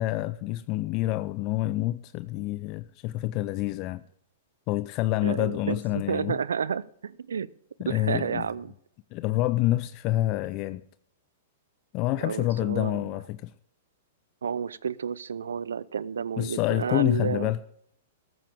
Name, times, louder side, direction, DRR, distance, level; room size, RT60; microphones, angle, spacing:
voice 1, 0.0-4.0 4.7-6.4 7.8-8.5 9.1-10.8 11.9-13.5 16.4-17.6, left 16 dB, 40° left, 0.5 m, -27 dB
voice 2, 5.2-7.5 7.9-8.7 12.2-13.1 14.4-17.5, right 7 dB, 80° right, 0.6 m, -31 dB
14.0 x 14.0 x 3.5 m
hypercardioid pair, 110°, 0 cm